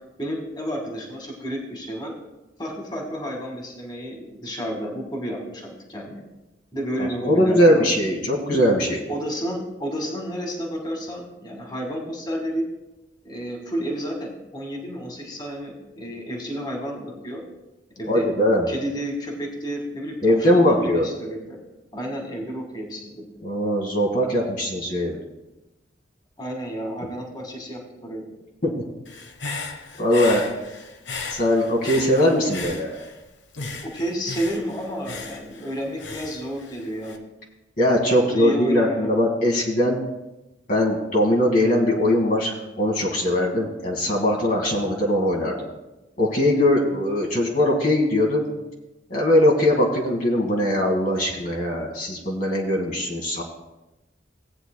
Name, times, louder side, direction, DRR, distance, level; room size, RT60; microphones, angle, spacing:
voice 1, 0.2-2.1 2.6-6.2 6.7-7.9 9.1-12.7 13.2-17.4 18.0-18.3 18.7-21.6 21.9-23.2 26.4-28.2 33.8-37.2 38.3-39.1, equal, 20° left, 0 dB, 1.8 m, -31 dB
voice 2, 7.0-9.0 18.1-18.6 20.2-21.1 23.4-25.2 28.6-28.7 30.0-30.4 31.3-33.0 37.8-40.0 40.7-45.7 46.2-48.5 49.1-53.4, left 1 dB, 45° left, -2 dB, 1.6 m, -21 dB
Human voice / Breathing, 29.1-33.2 33.5-37.2, left 4 dB, 70° left, 1.1 m, -36 dB
17.5 x 9.0 x 2.2 m, 1.0 s
head